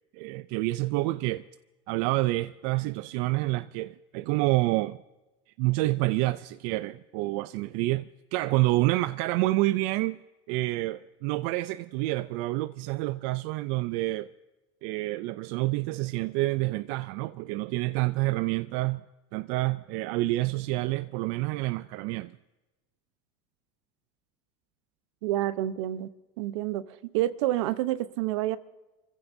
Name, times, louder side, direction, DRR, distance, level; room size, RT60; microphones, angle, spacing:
voice 1, 0.1-1.4 1.9-5.0 5.6-8.0 8.3-10.2 10.5-14.3 14.8-19.0 19.3-22.4, right 19 dB, 65° right, 0.4 m, -28 dB
voice 2, 25.2-26.1 26.4-28.6, right 14 dB, 80° right, 0.8 m, -28 dB
28.5 x 15.5 x 2.7 m
supercardioid pair, 130°, 15 cm